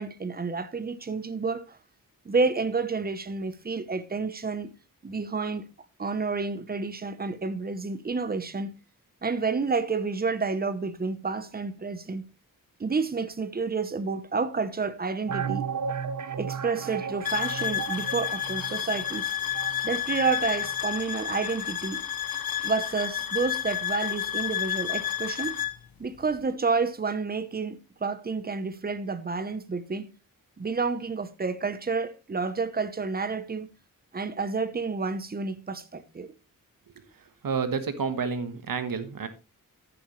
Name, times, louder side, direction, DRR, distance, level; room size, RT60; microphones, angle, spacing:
voice 1, 0.0-1.8 2.2-4.7 5.0-5.6 6.0-8.7 9.2-12.3 12.8-15.7 16.4-19.3 19.8-22.0 22.6-25.6 26.0-30.1 30.6-33.7 34.1-36.3, right 4 dB, 25° right, 0.9 m, -30 dB
sound 1, 15.3-20.9 21.1-21.2, right 7 dB, 55° right, 1.0 m, -35 dB
sound 2, 17.2-25.8, left 10 dB, 85° left, 1.0 m, -30 dB
voice 2, 37.4-39.3, right 5 dB, 75° right, 1.5 m, -29 dB
11.0 x 9.9 x 3.2 m
wide cardioid pair, 180°, 35 cm